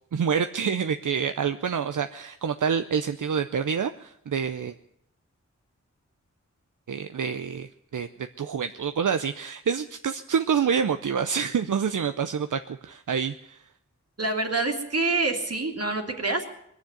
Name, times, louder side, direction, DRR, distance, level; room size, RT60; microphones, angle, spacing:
voice 1, 0.0-4.7 6.9-8.1 8.4-13.6, right 7 dB, 80° right, 9 dB, 0.6 m, -27 dB
voice 2, 14.2-16.5, right 3 dB, 50° right, 3 dB, 2.4 m, -26 dB
21.5 x 7.3 x 9.1 m, 0.75 s
wide cardioid pair, 60°, 31 cm